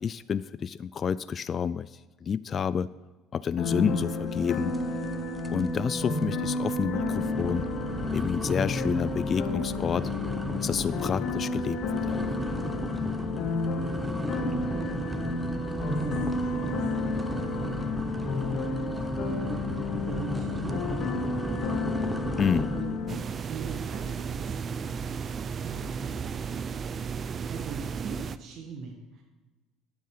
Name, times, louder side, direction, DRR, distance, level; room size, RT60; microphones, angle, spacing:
voice 1, 0.0-2.9 3.3-4.7 5.5-7.7 8.1-10.1 10.6-12.3 22.4-22.7, left 7 dB, 40° left, 16 dB, 0.3 m, -29 dB
sound 1, 3.6-23.2, left 3 dB, 55° left, 2.2 m, -31 dB
sound 2, 4.7-5.1 5.4-5.8 6.2-6.3 6.9-23.1, right 1 dB, 10° right, 0.8 m, -35 dB
voice 2, 14.7-15.2 15.7-17.8 18.7-21.8 22.7-23.0 23.5-25.0 25.6-26.2 27.5-29.2, right 5 dB, 55° right, 1 dB, 1.7 m, -42 dB
sound 3, 23.1-28.4, right 6 dB, 40° right, 0.5 m, -34 dB
12.0 x 9.4 x 5.0 m, 1.2 s
supercardioid pair, 100°, 0 cm